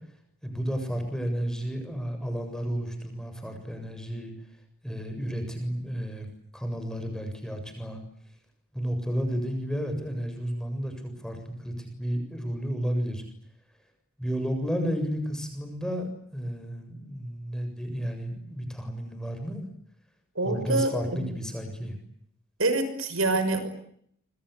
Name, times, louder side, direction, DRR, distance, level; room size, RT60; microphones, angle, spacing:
voice 1, 0.4-4.3 4.8-8.0 8.7-13.2 14.2-19.7 20.4-22.0, equal, 5° left, 5 dB, 7.4 m, -32 dB
voice 2, 20.4-21.3 22.6-23.7, right 2 dB, 70° right, 10 dB, 5.8 m, -26 dB
27.0 x 26.5 x 8.5 m, 0.70 s
head